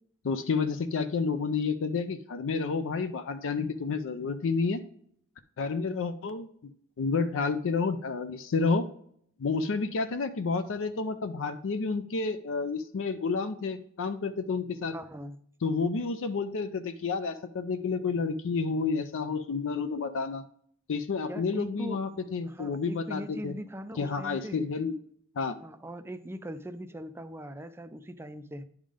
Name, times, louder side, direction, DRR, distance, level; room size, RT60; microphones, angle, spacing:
voice 1, 0.2-4.8 5.6-6.5 7.0-8.9 9.4-14.9 15.6-20.4 20.9-23.5 24.0-24.9 25.4-25.6, left 4 dB, 60° left, 9 dB, 0.5 m, -30 dB
voice 2, 14.9-15.4 21.3-22.0 22.4-24.6 25.6-28.6, equal, 10° right, 9 dB, 0.4 m, -40 dB
10.0 x 3.6 x 5.0 m, 0.65 s
head